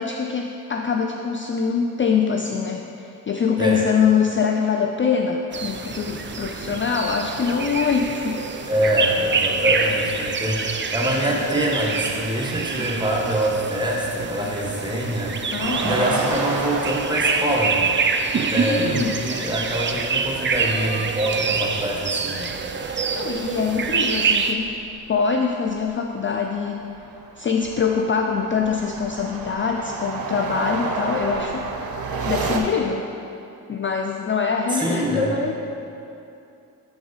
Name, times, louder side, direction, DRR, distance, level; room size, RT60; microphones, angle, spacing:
voice 1, 0.0-8.4 15.5-16.2 18.7-19.1 23.0-24.7 25.1-26.9 27.4-31.7 32.2-33.1 33.7-35.5, left 6 dB, 35° left, 3 dB, 0.4 m, -24 dB
sound 1, 5.5-24.5, right 5 dB, 35° right, 0.4 m, -26 dB
voice 2, 8.7-17.9 18.3-22.5 34.7-35.3, equal, 10° right, -3 dB, 1.2 m, -24 dB
sound 2, 15.6-20.0 20.3-20.4 20.7-23.0 23.3-25.2 25.7-25.9 26.4-32.6, right 4 dB, 75° right, 0.7 m, -31 dB
6.2 x 4.7 x 4.0 m, 2.7 s
cardioid pair, 55°, 36 cm